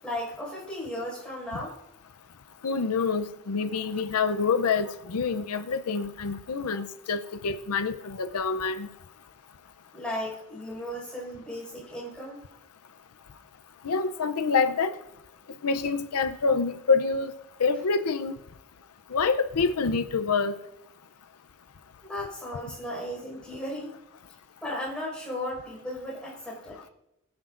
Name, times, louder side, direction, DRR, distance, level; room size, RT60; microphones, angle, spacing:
voice 1, 0.0-1.7 9.9-12.4 22.0-23.9 24.6-26.8, left 1 dB, 5° left, -5 dB, 5.1 m, -35 dB
voice 2, 2.6-8.9 13.8-14.9 15.6-17.3 17.6-18.3 19.1-20.5, left 4 dB, 90° left, 10 dB, 0.6 m, -26 dB
20.5 x 9.6 x 2.5 m, 0.90 s
head